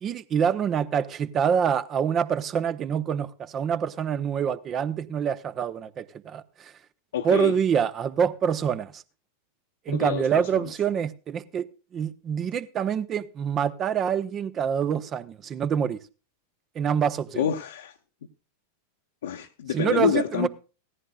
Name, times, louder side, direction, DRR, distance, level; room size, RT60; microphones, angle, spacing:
voice 1, 0.0-6.7 7.2-9.0 9.9-11.6 11.9-16.0 16.7-17.4 19.7-20.5, right 8 dB, 30° right, 0.8 m, -26 dB
voice 2, 7.1-7.5 9.9-10.7 17.4-17.9 19.2-20.5, left 8 dB, 60° left, 0.9 m, -27 dB
17.0 x 14.5 x 2.3 m
figure-of-eight pair, 90°, 0 cm